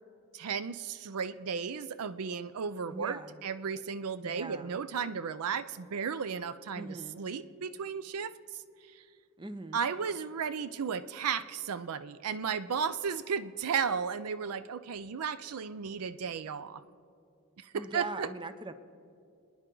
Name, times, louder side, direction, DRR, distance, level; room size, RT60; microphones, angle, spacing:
voice 1, 0.3-8.6 8.9-9.0 9.7-16.8 17.6-18.3, right 6 dB, 80° right, 14 dB, 0.5 m, -34 dB
voice 2, 2.9-3.4 4.2-4.8 6.7-7.2 9.4-9.8 17.7-18.7, right 2 dB, 20° right, 10 dB, 0.6 m, -41 dB
29.5 x 10.5 x 3.9 m, 2.5 s
head